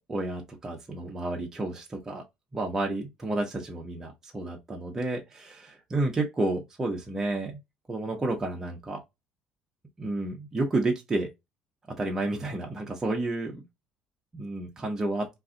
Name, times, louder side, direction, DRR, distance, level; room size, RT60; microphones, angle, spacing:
voice 1, 0.1-2.2 2.5-7.6 7.9-9.0 10.0-11.3 12.0-13.6 14.3-15.3, right 2 dB, 20° right, 0.7 m, -31 dB
2.5 x 2.3 x 3.7 m
cardioid pair, 120°, 2 cm